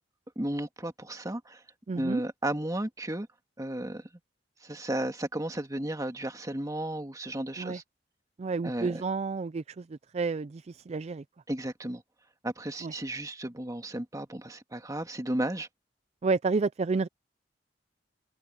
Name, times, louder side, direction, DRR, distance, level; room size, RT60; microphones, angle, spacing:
voice 1, 0.4-1.6 1.9-3.3 3.6-4.1 4.6-7.8 8.6-9.0 11.5-12.0 12.4-15.7, right 1 dB, 20° right, 1.9 m, -34 dB
voice 2, 1.9-2.2 7.6-7.8 8.4-11.2 12.8-12.9 16.2-17.1, right 4 dB, 35° right, 0.4 m, -30 dB
head